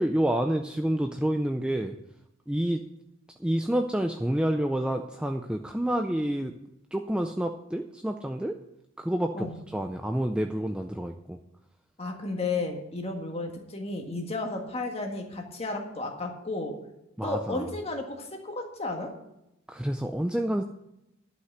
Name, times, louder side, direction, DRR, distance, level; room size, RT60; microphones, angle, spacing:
voice 1, 0.0-2.0 2.5-2.8 3.4-6.5 6.9-8.6 9.0-11.4 17.2-17.7 19.7-20.6, right 1 dB, 5° right, 4 dB, 0.4 m, -28 dB
voice 2, 12.0-16.7 17.2-19.1, left 2 dB, 30° left, 2 dB, 1.7 m, -33 dB
11.5 x 5.7 x 7.8 m, 0.86 s
head